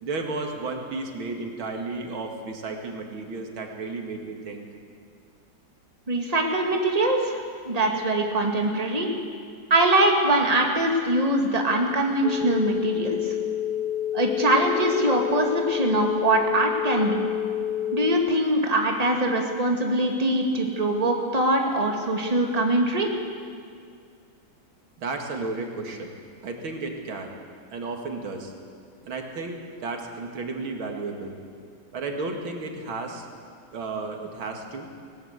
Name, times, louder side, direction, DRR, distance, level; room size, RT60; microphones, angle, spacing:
voice 1, 0.0-4.6 25.0-27.3 27.7-28.5 29.1-31.4 31.9-33.3 33.7-34.9, right 3 dB, 90° right, 2 dB, 2.9 m, -33 dB
voice 2, 6.1-9.1 9.7-13.3 14.1-17.2 17.9-23.1, right 1 dB, 20° right, 1 dB, 2.2 m, -23 dB
sound 1, 12.2-18.2, left 10 dB, 50° left, 2.2 m, -28 dB
19.5 x 19.5 x 8.2 m, 2.3 s
omnidirectional pair, 2.2 m